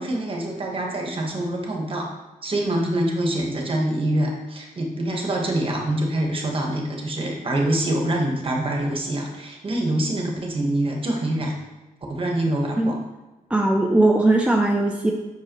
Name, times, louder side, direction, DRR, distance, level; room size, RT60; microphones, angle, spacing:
voice 1, 0.0-2.1 2.4-11.5 12.1-13.0, right 1 dB, 35° right, 0 dB, 1.2 m, -25 dB
voice 2, 13.5-15.1, right 2 dB, 10° right, 2 dB, 0.4 m, -19 dB
7.5 x 5.9 x 3.0 m, 1.1 s
wide cardioid pair, 160°, 15 cm